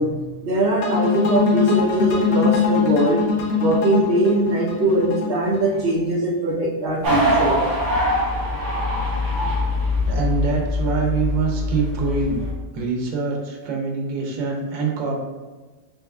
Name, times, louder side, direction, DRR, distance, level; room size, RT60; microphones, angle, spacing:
voice 1, 0.0-3.2 3.6-7.6 9.4-9.5, right 2 dB, 70° right, -4 dB, 0.5 m, -21 dB
sound 1, 0.8-5.9, left 5 dB, 65° left, 1.0 m, -22 dB
sound 2, 7.0-12.5, left 1 dB, 50° right, 1.1 m, -23 dB
voice 2, 10.1-12.4 12.7-15.2, right 4 dB, 90° right, 0 dB, 1.5 m, -24 dB
4.4 x 3.4 x 2.3 m, 1.3 s
omnidirectional pair, 1.9 m